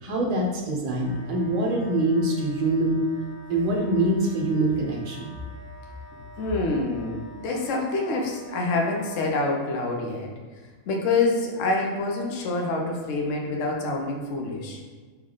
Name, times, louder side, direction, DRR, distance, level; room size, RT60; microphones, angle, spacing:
voice 1, 0.0-3.0 3.5-5.3, right 1 dB, 40° right, -1 dB, 0.6 m, -24 dB
Wind instrument woodwind instrument, 1.0-9.3, right 1 dB, 45° left, 1.1 m, -47 dB
voice 2, 6.4-10.3 10.9-14.8, left 3 dB, 65° left, 1 dB, 1.0 m, -26 dB
3.3 x 3.2 x 3.8 m, 1.4 s
omnidirectional pair, 1.5 m